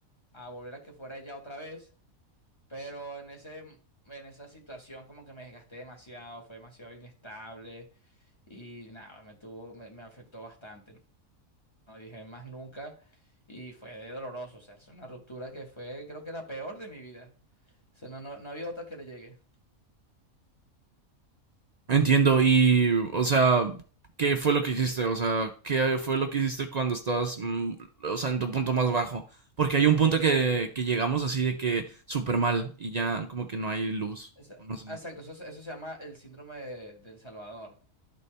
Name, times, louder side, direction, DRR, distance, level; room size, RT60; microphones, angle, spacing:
voice 1, 0.3-1.9 2.7-3.8 4.0-7.9 8.5-11.0 11.9-13.2 13.5-17.3 17.9-19.4 29.9-30.1 34.4-34.6 34.9-37.9, right 1 dB, 20° left, 1.3 m, -43 dB
voice 2, 21.9-23.8 24.2-29.2 29.6-34.3 34.6-34.9, right 5 dB, 90° right, 0.3 m, -25 dB
12.0 x 4.1 x 3.3 m
omnidirectional pair, 1.5 m